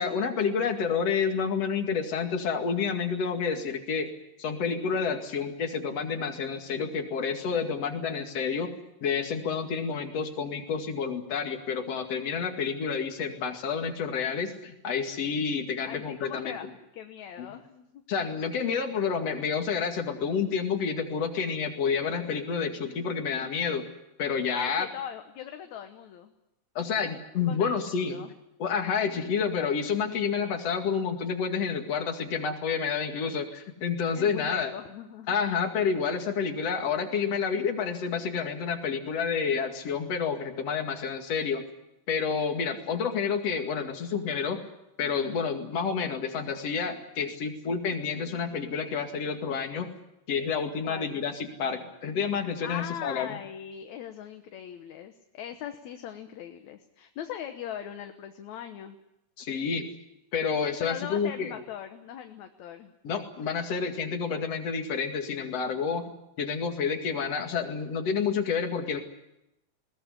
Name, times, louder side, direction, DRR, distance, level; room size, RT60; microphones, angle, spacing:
voice 1, 0.0-4.1 4.4-8.7 9.0-16.6 17.4-17.5 18.1-23.9 24.2-24.9 26.7-28.2 28.6-34.7 35.3-41.6 42.1-44.6 45.0-49.9 50.3-53.4 59.4-59.9 60.3-61.5 63.0-66.1 66.4-69.0, left 6 dB, 55° left, 5 dB, 3.2 m, -29 dB
voice 2, 15.8-16.7 16.9-18.0 24.5-26.3 27.5-28.3 34.1-35.4 50.8-51.2 52.4-59.0 60.8-62.9, left 9 dB, 70° left, 6 dB, 2.4 m, -40 dB
21.0 x 18.0 x 9.8 m, 0.88 s
omnidirectional pair, 3.5 m